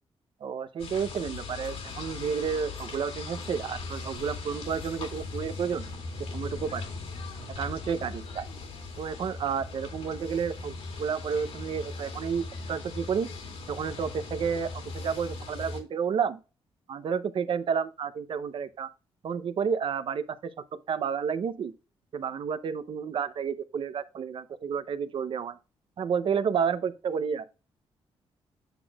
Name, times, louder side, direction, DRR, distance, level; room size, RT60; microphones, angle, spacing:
voice 1, 0.4-5.9 6.3-6.8 7.6-8.4 9.0-13.3 13.7-16.4 16.9-18.9 19.2-20.4 20.7-21.7 22.1-25.6 26.0-27.5, right 6 dB, 55° right, 0.6 m, -31 dB
sound 1, 0.8-15.8, left 3 dB, 75° left, 2.3 m, -39 dB
8.2 x 5.9 x 2.3 m
cardioid pair, 130°, 10 cm